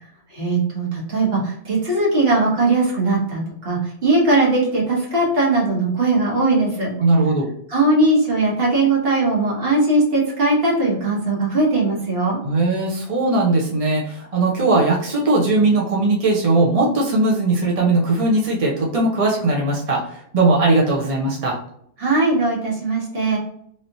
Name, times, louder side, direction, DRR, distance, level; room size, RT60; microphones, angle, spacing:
voice 1, 0.3-6.9 7.7-12.4 22.0-23.4, right 2 dB, 55° right, -3 dB, 1.4 m, -19 dB
voice 2, 7.0-7.5 12.4-21.6, right 2 dB, 35° right, -3 dB, 0.7 m, -19 dB
3.2 x 2.8 x 2.6 m, 0.68 s
omnidirectional pair, 1.2 m